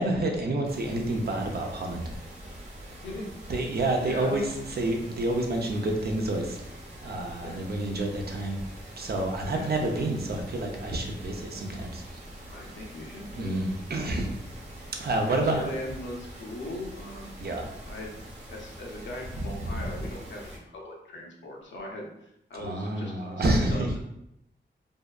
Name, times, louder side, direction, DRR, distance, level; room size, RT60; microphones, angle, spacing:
voice 1, 0.0-2.1 3.5-6.7 7.0-8.6 9.0-12.2 13.3-14.3 15.0-15.7 17.4-17.9 19.6-19.8 22.6-23.9, right 2 dB, 55° right, 2 dB, 0.5 m, -29 dB
sound 1, 0.6-20.6, equal, 35° right, 1.0 m, -44 dB
voice 2, 3.0-3.3 4.0-4.5 7.4-7.6 9.5-9.7 12.5-13.6 15.2-17.5 17.9-18.1 18.5-24.0, left 1 dB, 70° left, -1 dB, 0.7 m, -39 dB
2.6 x 2.1 x 2.3 m, 0.82 s
cardioid pair, 55°, 20 cm